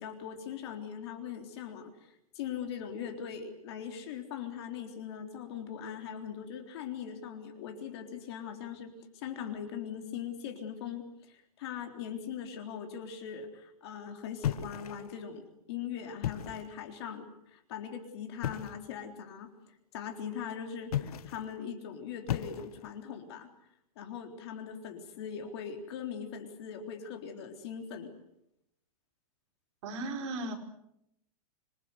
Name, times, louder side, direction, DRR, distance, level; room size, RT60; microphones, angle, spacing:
voice 1, 0.0-19.5 19.9-23.5 24.0-28.1, left 8 dB, 45° left, 5 dB, 3.7 m, -41 dB
sound 1, 14.4-15.2 16.1-16.8 18.4-18.9 20.8-21.5 22.3-23.0, left 11 dB, 75° left, 1.4 m, -36 dB
voice 2, 29.8-30.5, right 2 dB, 50° right, 2 dB, 5.1 m, -36 dB
27.0 x 22.0 x 8.1 m, 0.81 s
supercardioid pair, 175°, 19 cm